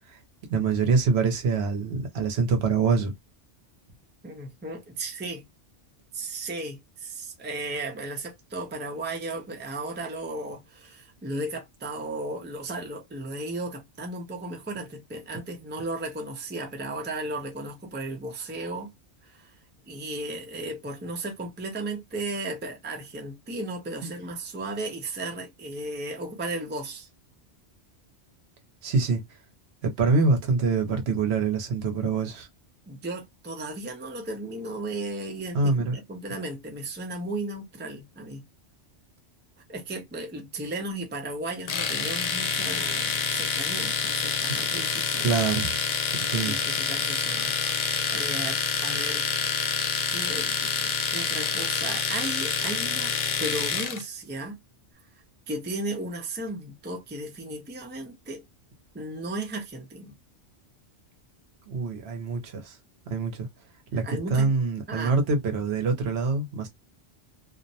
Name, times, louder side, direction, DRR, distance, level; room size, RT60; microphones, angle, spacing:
voice 1, 0.5-3.1 28.8-29.2 29.8-32.5 35.5-36.0 45.2-45.8 46.3-46.6 61.7-62.8 63.1-63.5 63.9-64.0 64.3-66.7, right 4 dB, 65° right, 0.9 m, -25 dB
voice 2, 4.2-5.4 6.1-18.9 19.2-19.5 19.9-27.1 32.9-38.4 39.7-45.3 46.4-49.3 50.1-53.1 53.4-54.6 55.5-58.4 58.9-60.1 64.0-64.5 64.9-65.2, right 2 dB, 15° right, 0.4 m, -35 dB
Domestic sounds home sounds, 41.7-54.0, left 6 dB, 75° left, 0.3 m, -27 dB
2.5 x 2.1 x 2.6 m
omnidirectional pair, 1.2 m